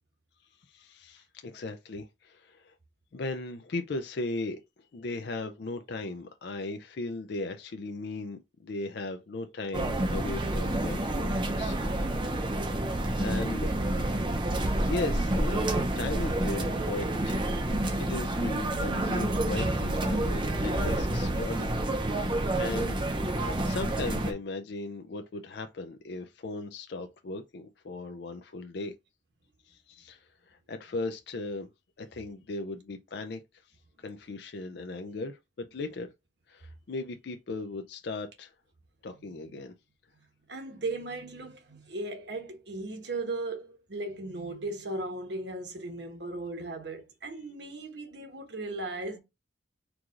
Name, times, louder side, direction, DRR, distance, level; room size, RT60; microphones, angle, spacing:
voice 1, 0.4-2.7 3.1-11.8 13.2-13.7 14.9-17.4 18.0-21.7 22.1-23.0 23.6-29.0 29.6-31.7 32.0-36.1 36.5-38.5 39.0-39.7, left 3 dB, 55° left, 0.4 m, -37 dB
sound 1, 9.7-24.3, right 1 dB, 25° right, 0.6 m, -29 dB
voice 2, 40.5-49.2, right 2 dB, 60° right, 1.1 m, -37 dB
4.6 x 2.4 x 3.7 m
head